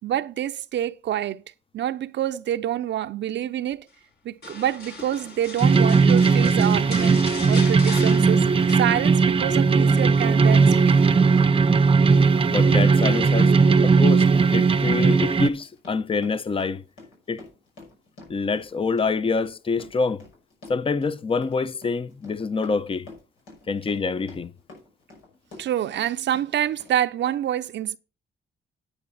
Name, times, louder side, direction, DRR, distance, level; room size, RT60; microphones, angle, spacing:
voice 1, 0.0-1.4 1.7-3.9 4.2-8.5 8.8-11.0 25.6-28.0, right 11 dB, 65° right, 0.6 m, -27 dB
sound 1, 4.4-9.4 9.7-10.1 10.5-11.5 12.7-13.1 13.6-13.8, left 4 dB, 55° left, 2.7 m, -39 dB
sound 2, 5.6-15.5, right 4 dB, 25° right, 0.7 m, -18 dB
Run, 7.8-7.9 8.4-26.1 26.3-27.0 27.2-27.3, left 2 dB, 85° left, 5.9 m, -48 dB
voice 2, 12.5-13.6 13.8-16.8 17.3-17.4 18.3-20.2 20.7-23.1 23.7-24.5, left 4 dB, 25° left, 0.7 m, -26 dB
9.9 x 8.7 x 4.1 m
cardioid pair, 90°, 20 cm